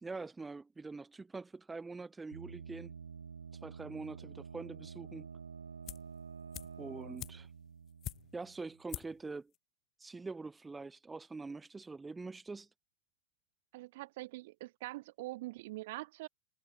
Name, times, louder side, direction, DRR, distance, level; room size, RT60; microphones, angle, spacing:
voice 1, 0.0-2.9 3.6-5.3 6.8-7.5 8.3-9.5 10.0-12.7, right 3 dB, 10° right, 1.5 m, -44 dB
sound 1, 2.3-8.9, right 6 dB, 70° right, 0.3 m, -49 dB
sound 2, 5.9-6.2 6.5-8.5 8.9-9.3 9.5-9.6, left 13 dB, 30° left, 0.4 m, -46 dB
voice 2, 13.7-16.3, right 19 dB, 50° right, 1.2 m, -44 dB
figure-of-eight pair, 90°, 0 cm